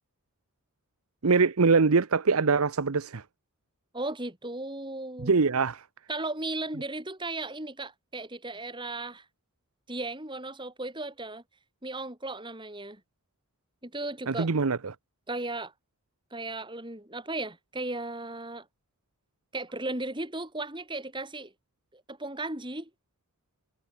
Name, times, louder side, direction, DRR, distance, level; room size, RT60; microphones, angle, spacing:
voice 1, 1.2-3.2 5.2-5.8 14.3-14.9, right 4 dB, 80° right, 0.8 m, -23 dB
voice 2, 3.9-5.3 6.1-9.2 9.9-11.4 11.8-13.0 13.8-14.5 15.3-15.7 16.3-18.7 19.5-21.5 21.9-22.9, right 2 dB, 20° right, 4.6 m, -36 dB
head